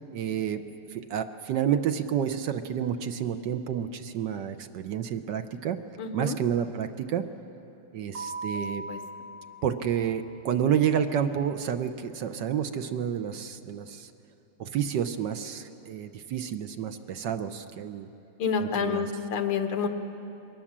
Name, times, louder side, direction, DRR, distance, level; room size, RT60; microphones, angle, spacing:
voice 1, 0.1-0.6 0.9-5.8 6.1-7.3 7.9-8.8 9.6-14.1 14.6-18.1 18.6-19.1, right 9 dB, 65° right, 8 dB, 1.2 m, -29 dB
voice 2, 6.0-6.4 8.9-9.0 18.4-19.9, left 5 dB, 85° left, 6 dB, 2.1 m, -28 dB
Keyboard (musical), 8.1-10.7, right 2 dB, 80° right, 3.1 m, -40 dB
23.0 x 18.5 x 7.4 m, 2.9 s
omnidirectional pair, 2.3 m